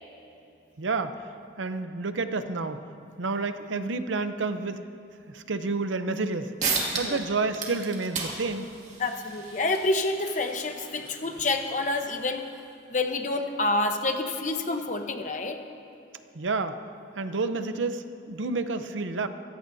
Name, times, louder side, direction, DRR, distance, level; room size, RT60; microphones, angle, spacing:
voice 1, 0.8-1.2 1.6-2.8 3.2-4.8 5.3-6.5 6.9-8.7 16.3-16.8 17.2-19.3, right 3 dB, 85° right, 9 dB, 0.7 m, -29 dB
sound 1, 6.2-6.3 6.6-7.2 7.5-12.7, right 4 dB, 35° right, 2.2 m, -35 dB
voice 2, 9.0-12.4 12.9-15.6, left 2 dB, 40° left, 5 dB, 1.0 m, -28 dB
25.0 x 15.0 x 2.7 m, 2.9 s
head